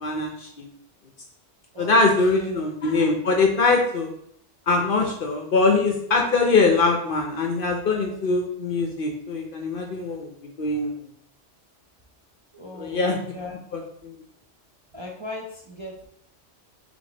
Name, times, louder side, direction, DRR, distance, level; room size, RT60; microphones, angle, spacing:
voice 1, 0.0-0.7 1.8-4.1 4.7-10.9 12.7-13.2 13.7-14.1, left 3 dB, 55° left, 2 dB, 0.7 m, -22 dB
voice 2, 1.7-2.6 12.5-13.6 14.9-16.1, left 2 dB, 35° right, -3 dB, 0.5 m, -38 dB
3.5 x 3.4 x 3.7 m, 0.69 s
omnidirectional pair, 1.2 m